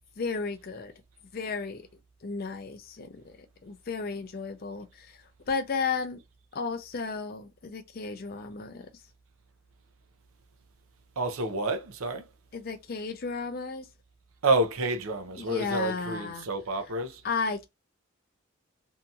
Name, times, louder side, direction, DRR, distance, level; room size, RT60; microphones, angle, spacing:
voice 1, 0.2-0.9 1.3-1.9 2.2-3.3 3.6-5.1 5.5-6.2 6.5-8.9 12.5-13.9 15.4-16.5 17.2-17.7, left 4 dB, 45° left, 0.5 m, -33 dB
voice 2, 11.2-12.3 14.4-17.2, right 2 dB, 85° right, 0.6 m, -29 dB
2.7 x 2.7 x 2.3 m
head